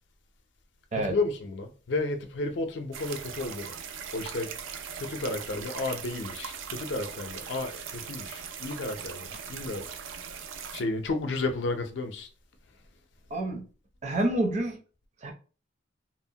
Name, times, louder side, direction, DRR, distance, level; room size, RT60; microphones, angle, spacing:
voice 1, 1.0-3.7 4.1-4.5 5.0-9.9 10.7-12.3, left 2 dB, 65° left, 0.5 m, -32 dB
sound 1, 2.9-10.8, right 7 dB, 85° right, 0.4 m, -40 dB
voice 2, 13.3-13.7 14.0-14.8 15.2-15.3, right 1 dB, 35° right, 0.5 m, -28 dB
2.9 x 2.1 x 2.7 m
head